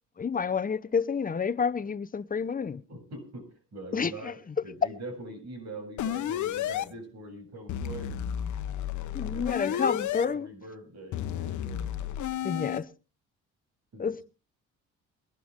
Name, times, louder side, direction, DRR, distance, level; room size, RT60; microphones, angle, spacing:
voice 1, 0.2-2.8 3.9-4.3 9.1-10.5 12.4-12.8 14.0-14.2, left 6 dB, 30° left, 0.8 m, -29 dB
voice 2, 2.9-8.2 9.2-12.0 12.5-12.8 13.9-14.1, right 1 dB, 60° right, 7.8 m, -44 dB
sound 1, 6.0-6.8 7.7-10.2 11.1-12.8, left 10 dB, 70° left, 1.0 m, -32 dB
22.0 x 12.0 x 3.6 m
cardioid pair, 90°, 30 cm